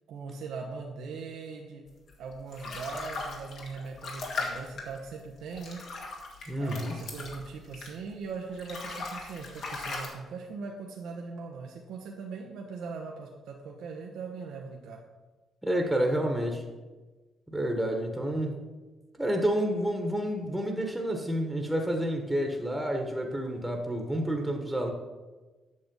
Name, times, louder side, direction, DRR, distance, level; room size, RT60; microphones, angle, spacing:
voice 1, 0.1-1.8 2.2-5.8 6.6-15.0, right 4 dB, 80° right, 0 dB, 1.0 m, -40 dB
sound 1, 2.1-8.2 8.5-10.1, left 3 dB, 70° left, 2.2 m, -39 dB
voice 2, 6.5-7.0 15.6-16.6 17.5-18.5 19.2-24.9, right 1 dB, 5° right, 2 dB, 1.3 m, -29 dB
8.6 x 6.5 x 5.4 m, 1.2 s
cardioid pair, 90°, 0 cm